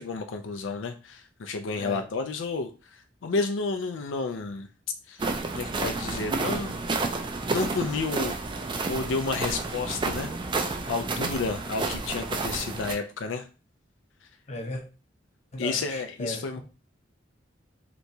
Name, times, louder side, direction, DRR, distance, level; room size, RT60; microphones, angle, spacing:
voice 1, 0.0-4.7 5.1-5.3 5.5-6.8 7.5-8.4 8.9-10.3 10.9-13.5 15.6-16.6, left 4 dB, 90° left, 7 dB, 0.4 m, -31 dB
sound 1, 5.2-12.9, right 3 dB, 25° right, 0.4 m, -30 dB
voice 2, 14.5-14.8 15.5-16.6, left 1 dB, 35° left, 2 dB, 0.7 m, -36 dB
3.4 x 2.9 x 2.7 m, 0.33 s
head